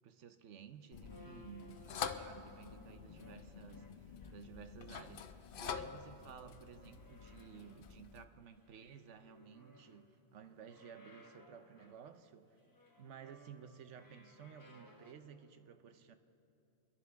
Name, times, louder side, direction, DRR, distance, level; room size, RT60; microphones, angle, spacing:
voice 1, 0.0-12.6 13.0-16.2, right 7 dB, 90° right, 1.1 m, -55 dB
sound 1, 0.9-8.2, left 7 dB, 55° left, 0.7 m, -47 dB
sound 2, 1.0-2.3 2.8-4.6 4.9-6.2 6.5-8.0 8.4-10.1 10.4-12.0 12.6-15.1, left 1 dB, 20° left, 1.3 m, -62 dB
26.0 x 11.0 x 3.5 m
omnidirectional pair, 1.2 m